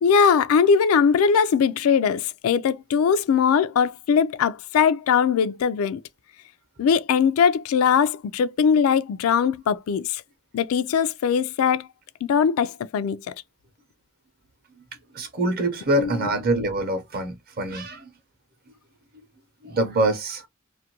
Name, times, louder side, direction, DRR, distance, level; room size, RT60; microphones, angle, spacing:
voice 1, 0.0-6.0 6.8-10.2 10.5-11.9 12.2-13.2 16.0-16.3, left 6 dB, 75° left, 0.3 m, -20 dB
voice 2, 15.1-18.1 19.6-20.5, right 1 dB, 45° right, 0.7 m, -25 dB
2.5 x 2.4 x 2.8 m
head